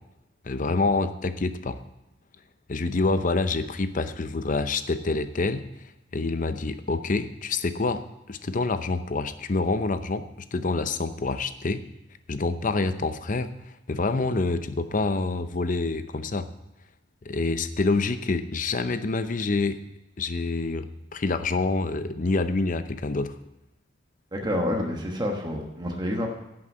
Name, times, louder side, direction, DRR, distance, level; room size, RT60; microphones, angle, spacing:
voice 1, 0.5-1.8 2.7-5.6 6.1-10.2 10.5-11.8 12.3-13.5 13.9-16.5 17.2-19.8 20.2-23.4, left 3 dB, 45° left, 11 dB, 0.7 m, -27 dB
voice 2, 24.3-26.3, left 1 dB, 20° right, 1 dB, 1.2 m, -28 dB
11.0 x 6.1 x 8.5 m, 0.90 s
head